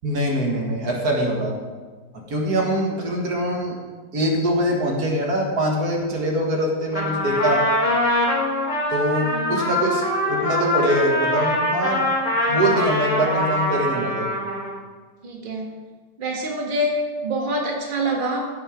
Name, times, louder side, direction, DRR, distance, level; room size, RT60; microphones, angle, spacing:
voice 1, 0.0-1.5 2.1-3.8 4.1-7.6 8.9-12.1 12.5-14.3, right 1 dB, 70° right, 0 dB, 2.2 m, -23 dB
Trumpet, 6.9-14.8, left 1 dB, 25° left, 2.9 m, -23 dB
voice 2, 9.2-9.7 15.2-15.7 16.2-18.5, right 1 dB, 35° right, -1 dB, 1.8 m, -26 dB
15.0 x 6.2 x 5.1 m, 1.4 s
omnidirectional pair, 1.6 m